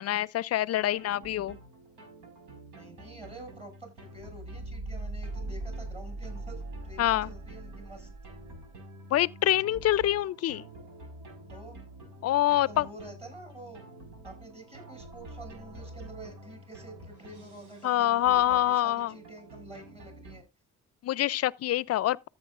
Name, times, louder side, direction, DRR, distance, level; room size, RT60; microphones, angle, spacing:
voice 1, 0.0-1.6 7.0-7.3 9.1-10.7 12.2-12.9 17.8-19.1 21.0-22.2, left 13 dB, 55° left, 0.5 m, -26 dB
sound 1, 0.7-20.4, right 2 dB, 80° right, 5.0 m, -44 dB
voice 2, 2.7-8.1 11.5-11.8 12.5-13.8 14.2-20.4, right 1 dB, 20° right, 7.0 m, -48 dB
14.0 x 8.3 x 2.5 m
cardioid pair, 90°, 30 cm